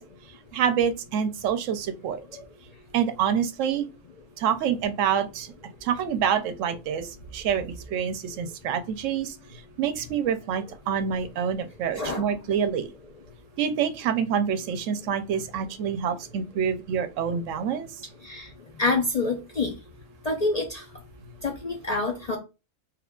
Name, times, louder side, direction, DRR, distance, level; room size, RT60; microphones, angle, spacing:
voice 1, 0.5-2.2 2.9-3.9 4.4-5.5 5.8-9.4 9.8-12.9 13.6-17.9, right 8 dB, 85° right, 0.9 m, -27 dB
voice 2, 11.9-12.4 18.2-18.5 18.8-19.7 20.2-20.9 21.4-22.4, left 3 dB, 50° left, 0.5 m, -27 dB
3.1 x 2.3 x 3.6 m
omnidirectional pair, 1.3 m